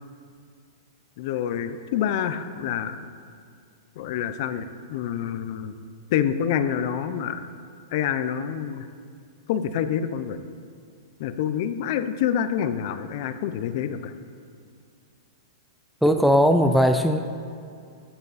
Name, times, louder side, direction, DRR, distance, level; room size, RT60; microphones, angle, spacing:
voice 1, 1.2-3.0 4.0-5.7 6.1-7.5 7.9-8.9 9.5-10.4 11.2-14.1, left 9 dB, 50° left, 11 dB, 0.6 m, -27 dB
voice 2, 16.0-17.2, equal, ahead, 5 dB, 0.4 m, -18 dB
14.5 x 8.0 x 4.2 m, 2.4 s
hypercardioid pair, 150°, 2 cm